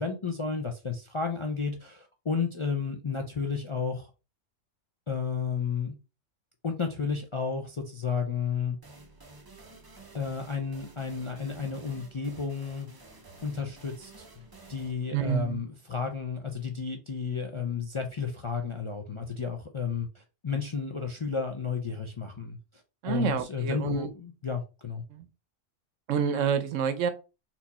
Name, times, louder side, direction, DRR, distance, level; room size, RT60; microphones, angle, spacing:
voice 1, 0.0-4.1 5.1-6.0 6.6-8.8 10.1-12.9 13.4-14.4 14.7-22.6 23.0-25.0, left 5 dB, 40° left, 0.4 m, -32 dB
sound 1, 8.8-16.3, right 2 dB, 25° right, 0.5 m, -52 dB
voice 2, 15.1-15.6 23.0-24.1 25.1-25.3 26.1-27.1, right 7 dB, 80° right, 1.0 m, -28 dB
4.4 x 2.8 x 4.1 m
omnidirectional pair, 1.3 m